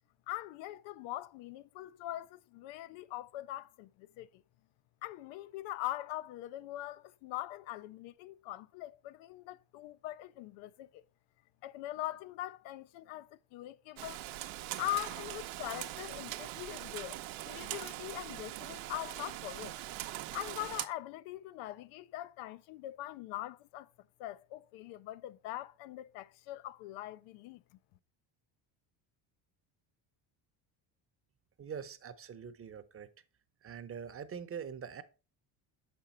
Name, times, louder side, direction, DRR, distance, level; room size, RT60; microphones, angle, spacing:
voice 1, 0.3-4.4 5.0-11.0 11.6-14.2 14.8-17.2 17.4-19.8 20.3-23.9 24.2-27.6, left 15 dB, 85° left, 0.6 m, -42 dB
Rain, 14.0-20.9, right 15 dB, 85° right, 0.7 m, -42 dB
voice 2, 31.6-33.1 33.6-35.0, right 7 dB, 30° right, 0.7 m, -43 dB
6.6 x 5.2 x 4.3 m
cardioid pair, 120°, 46 cm